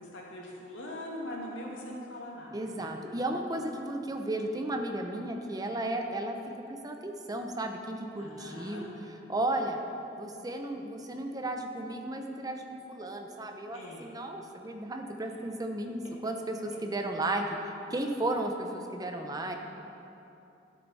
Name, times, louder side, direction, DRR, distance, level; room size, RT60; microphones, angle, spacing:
voice 1, 0.0-3.0 8.2-8.9 13.7-14.1 16.6-16.8 19.5-19.6, left 1 dB, 85° left, -3 dB, 1.9 m, -42 dB
voice 2, 2.5-6.4 6.7-9.8 10.2-17.4 17.9-19.6, right 1 dB, 20° right, 4 dB, 0.7 m, -34 dB
12.0 x 8.0 x 4.1 m, 2.8 s
head